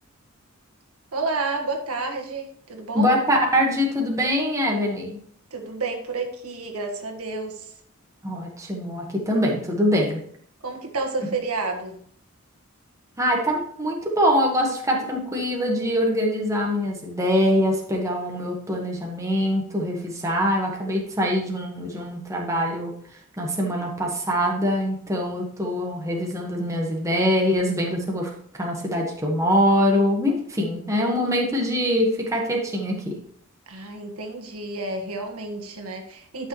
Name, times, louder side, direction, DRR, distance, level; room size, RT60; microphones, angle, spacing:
voice 1, 1.1-3.1 5.5-7.7 10.6-12.0 33.7-36.5, right 3 dB, 85° right, 3 dB, 1.7 m, -30 dB
voice 2, 2.9-5.2 8.2-10.2 13.2-22.9 23.4-33.2, equal, 15° right, -1 dB, 1.5 m, -23 dB
11.5 x 6.3 x 3.2 m, 0.62 s
head